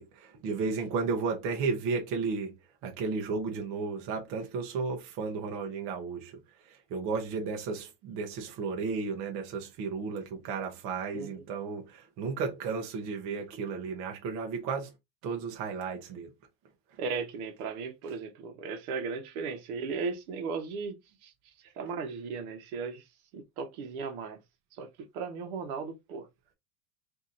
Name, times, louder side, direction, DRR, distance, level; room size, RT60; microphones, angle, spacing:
voice 1, 0.0-2.5 2.8-6.3 6.9-14.9 15.2-16.3, right 4 dB, 40° right, 0.8 m, -33 dB
voice 2, 11.1-11.4 17.0-21.3 21.8-23.0 23.3-24.4 24.8-24.9 25.1-26.3, right 5 dB, 65° right, 1.1 m, -36 dB
2.9 x 2.7 x 3.7 m
supercardioid pair, 170°, 46 cm